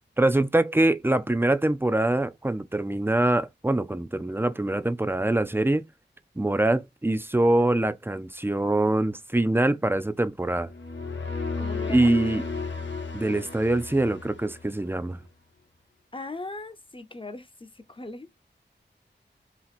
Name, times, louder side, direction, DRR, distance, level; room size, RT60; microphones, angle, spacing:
voice 1, 0.2-5.8 6.4-10.7 11.9-12.4 13.1-15.2, right 1 dB, 10° right, 0.5 m, -24 dB
sound 1, 10.7-15.0, left 4 dB, 75° left, 0.9 m, -33 dB
voice 2, 11.6-12.1 16.1-18.3, left 2 dB, 25° left, 0.7 m, -39 dB
2.9 x 2.9 x 4.1 m
wide cardioid pair, 55°, 19 cm